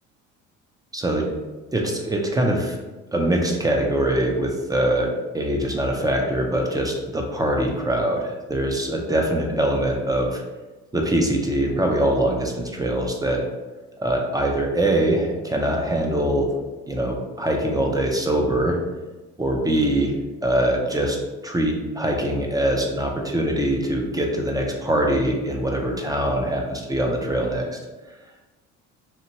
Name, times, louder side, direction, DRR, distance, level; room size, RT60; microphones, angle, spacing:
voice 1, 0.9-1.4 1.7-2.8 3.1-10.4 10.9-13.4 14.0-16.5 16.9-18.8 19.4-20.2 20.4-21.2 21.4-27.7, right 1 dB, 10° right, 1 dB, 0.4 m, -23 dB
2.9 x 2.5 x 2.8 m, 1.2 s
supercardioid pair, 95°, 31 cm